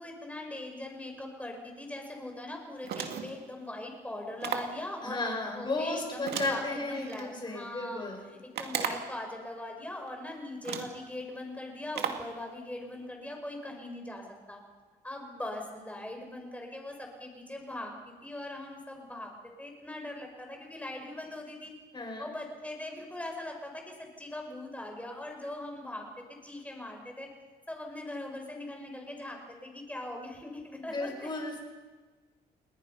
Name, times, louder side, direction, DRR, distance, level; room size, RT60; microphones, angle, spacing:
voice 1, 0.0-14.6 15.0-19.3 19.6-21.7 22.2-27.3 27.7-31.3, left 1 dB, 10° left, 2 dB, 5.5 m, -41 dB
sound 1, 2.8-3.4 4.4-4.8 6.3-7.3 8.5-9.2 10.1-10.2 10.6-11.0 11.9-12.3, right 8 dB, 80° right, 2.2 m, -35 dB
voice 2, 5.0-8.3 21.9-22.3 30.8-31.6, left 2 dB, 25° left, 2 dB, 6.1 m, -34 dB
30.0 x 20.5 x 5.7 m, 1.3 s
cardioid pair, 115°, 17 cm